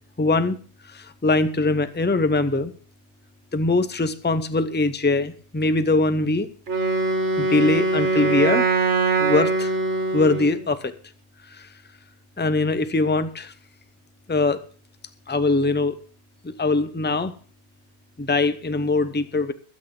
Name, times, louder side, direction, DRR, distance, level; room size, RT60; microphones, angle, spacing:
voice 1, 0.2-0.6 0.8-2.7 3.5-6.5 7.4-8.8 9.2-9.7 10.1-10.9 11.5-11.7 12.4-13.5 14.3-14.6 15.3-16.0 16.4-17.3 18.2-19.5, left 3 dB, 10° left, 11 dB, 0.8 m, -22 dB
Wind instrument woodwind instrument, 6.7-10.6, right 3 dB, 70° right, 2.0 m, -22 dB
22.0 x 8.7 x 3.8 m, 0.43 s
omnidirectional pair, 1.2 m